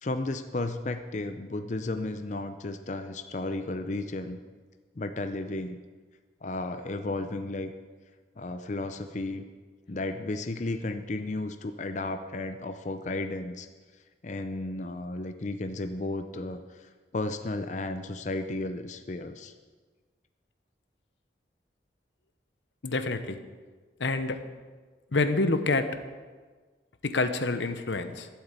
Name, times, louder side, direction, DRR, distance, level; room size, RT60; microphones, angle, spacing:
voice 1, 0.0-4.4 5.0-5.8 6.4-7.7 8.4-9.5 9.9-13.7 14.2-19.5, left 2 dB, 40° left, 8 dB, 0.6 m, -33 dB
voice 2, 22.8-23.4 24.0-24.4 25.1-25.9 27.0-28.3, left 3 dB, 85° left, 9 dB, 1.0 m, -27 dB
12.0 x 8.1 x 8.3 m, 1.4 s
head